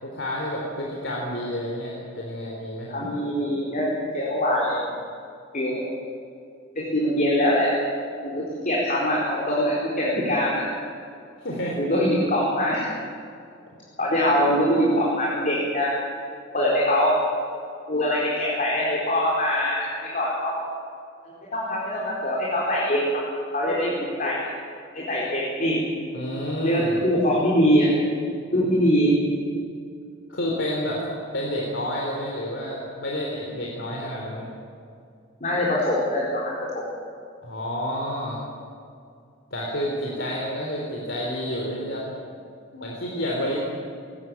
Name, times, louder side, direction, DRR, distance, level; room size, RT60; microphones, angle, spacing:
voice 1, 0.0-2.9 11.4-11.8 26.1-27.0 30.3-31.0 31.3-34.5 37.4-38.4 39.5-42.0 42.7-43.6, left 1 dB, 70° left, -2 dB, 3.7 m, -29 dB
voice 2, 2.9-4.9 5.5-5.8 6.7-7.7 8.2-10.7 11.8-12.9 14.0-15.9 16.5-17.2 17.9-20.5 21.5-23.2 23.5-24.4 24.9-25.8 26.6-27.9 28.5-29.2 35.4-36.8, equal, 45° left, -5 dB, 4.5 m, -23 dB
20.0 x 18.5 x 9.0 m, 2.4 s
head